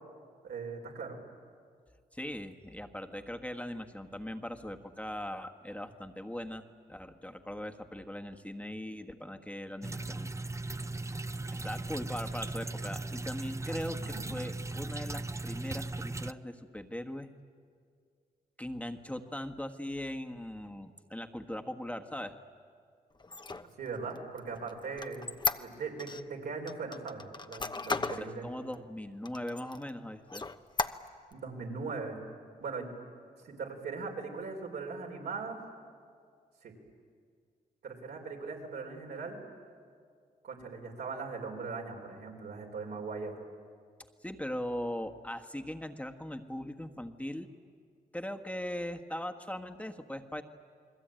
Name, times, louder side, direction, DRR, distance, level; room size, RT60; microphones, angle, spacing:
voice 1, 0.4-1.2 14.0-14.3 23.8-28.5 31.3-32.2 32.6-32.9 33.4-35.6 36.6-36.7 37.8-39.4 40.4-43.3, right 4 dB, 80° right, 0 dB, 4.7 m, -40 dB
voice 2, 2.1-6.6 6.9-10.3 11.5-17.3 18.6-22.4 28.0-30.4 44.2-47.5 48.1-50.4, left 1 dB, 10° left, 5 dB, 1.5 m, -40 dB
sound 1, 9.8-16.3, right 2 dB, 20° right, 0.6 m, -38 dB
Squeak, 23.2-26.2 26.7-28.3 28.7-28.8 29.2-29.9 30.3-31.3, left 3 dB, 30° left, 1.0 m, -35 dB
29.0 x 20.5 x 9.0 m, 2.1 s
cardioid pair, 65°, 16 cm